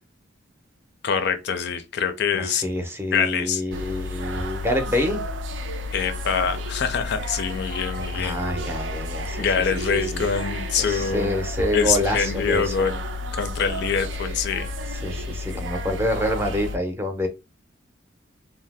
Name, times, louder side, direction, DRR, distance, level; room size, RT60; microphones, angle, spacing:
voice 1, 1.0-2.6 3.1-3.6 5.9-8.4 9.4-11.4 11.7-13.0 13.3-14.7, left 6 dB, 60° left, 0.4 m, -25 dB
voice 2, 2.3-5.2 8.1-9.8 10.1-10.2 10.8-12.7 15.0-17.3, equal, 15° right, 0.5 m, -27 dB
sound 1, 3.7-16.8, left 1 dB, 70° right, 0.5 m, -31 dB
2.7 x 2.0 x 3.3 m
head